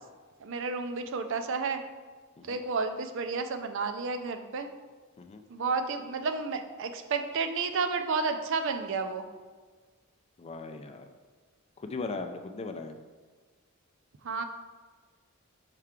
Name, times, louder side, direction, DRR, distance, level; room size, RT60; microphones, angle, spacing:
voice 1, 0.4-1.8 2.4-4.7 5.5-9.3 14.2-14.4, right 4 dB, 60° right, 7 dB, 0.5 m, -31 dB
voice 2, 10.4-11.1 11.8-12.9, left 3 dB, 30° left, 7 dB, 0.4 m, -38 dB
5.7 x 4.5 x 3.7 m, 1.5 s
head